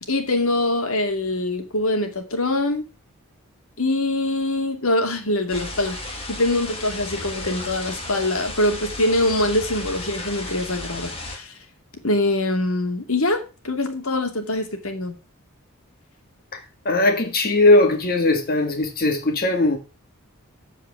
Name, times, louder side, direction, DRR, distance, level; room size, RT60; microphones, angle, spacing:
voice 1, 0.1-2.8 3.8-11.6 12.0-15.2, left 1 dB, 65° left, 2.5 m, -24 dB
sound 1, 5.5-11.4, left 2 dB, 25° left, 2.7 m, -34 dB
voice 2, 16.9-19.8, left 2 dB, 40° left, 1.9 m, -19 dB
14.5 x 4.9 x 6.1 m
head